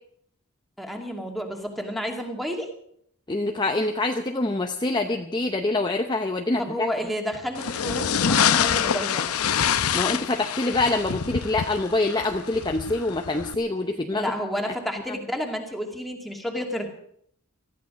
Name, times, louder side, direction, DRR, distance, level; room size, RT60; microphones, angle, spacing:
voice 1, 0.8-2.7 6.6-9.3 14.1-16.9, equal, ahead, 1 dB, 2.4 m, -31 dB
voice 2, 3.3-6.9 9.9-14.3, left 2 dB, 20° left, 4 dB, 0.8 m, -25 dB
sound 1, 7.5-13.5, left 8 dB, 85° left, 0.8 m, -26 dB
19.0 x 14.0 x 5.3 m, 0.68 s
head